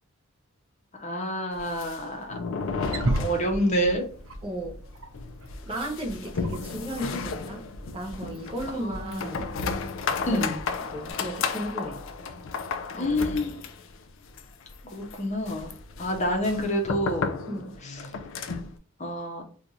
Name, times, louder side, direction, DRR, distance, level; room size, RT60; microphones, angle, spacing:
voice 1, 1.0-2.3 3.2-4.1 9.0-9.2 10.3-10.5 12.9-13.6 14.9-15.7 16.0-17.4 19.0-19.4, equal, 30° left, 0.7 m, -27 dB
sound 1, 1.5-3.9 4.2-4.3 4.6-4.7 5.1-18.8, left 4 dB, 60° left, 0.4 m, -34 dB
Wild animals, 2.6-11.1, right 1 dB, 65° right, 0.6 m, -37 dB
voice 2, 4.4-4.8 5.6-9.5 10.2-10.4 10.9-12.0 12.9-13.5 17.5-17.8, right 1 dB, 25° right, 0.9 m, -35 dB
2.5 x 2.4 x 4.1 m
head